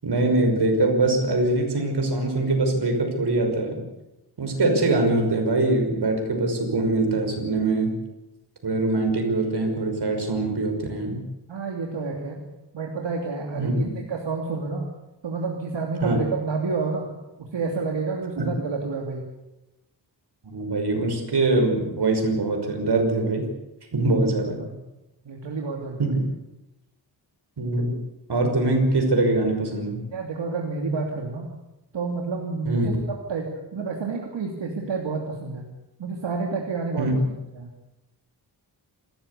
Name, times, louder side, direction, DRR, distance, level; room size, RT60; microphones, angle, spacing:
voice 1, 0.0-3.8 4.4-8.0 8.6-11.2 13.6-13.7 16.0-16.2 18.4-18.5 20.4-23.5 23.9-24.6 26.0-26.2 27.6-27.9 28.3-30.1 32.7-32.9 37.0-37.1, right 2 dB, 65° right, 4 dB, 5.8 m, -23 dB
voice 2, 11.5-12.4 12.7-14.9 15.2-17.1 17.4-19.2 24.5-24.8 25.2-26.2 30.1-31.5 31.9-35.7 36.0-37.1 37.5-37.7, right 4 dB, 85° right, 0 dB, 3.1 m, -29 dB
27.5 x 14.5 x 8.5 m, 0.97 s
wide cardioid pair, 125°, 43 cm